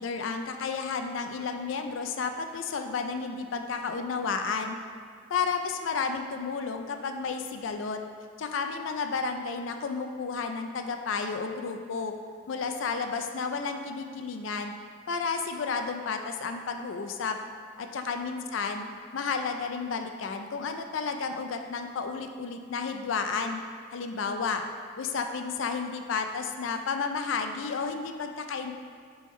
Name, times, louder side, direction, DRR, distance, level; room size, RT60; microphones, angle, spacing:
voice 1, 0.0-4.8 5.3-8.0 8.4-12.1 12.5-14.8 15.1-17.3 17.8-18.9 19.1-23.6 23.9-24.6 25.0-28.8, left 5 dB, 85° left, 5 dB, 0.4 m, -32 dB
9.7 x 3.5 x 3.2 m, 2.1 s
head